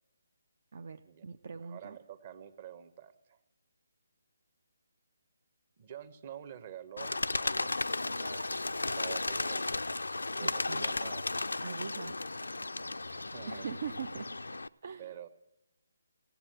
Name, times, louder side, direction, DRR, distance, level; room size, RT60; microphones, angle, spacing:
voice 1, 0.7-2.0 10.4-11.0 11.6-12.2 13.5-14.3 14.8-15.1, right 6 dB, 55° right, 9 dB, 0.5 m, -42 dB
voice 2, 1.6-3.4 5.8-9.7 10.4-11.3 12.9-13.7 15.0-15.3, right 10 dB, 35° right, 11 dB, 1.1 m, -48 dB
Bird, 7.0-14.7, left 2 dB, 85° left, 0.4 m, -34 dB
16.0 x 7.8 x 7.8 m, 0.94 s
figure-of-eight pair, 150°, 0 cm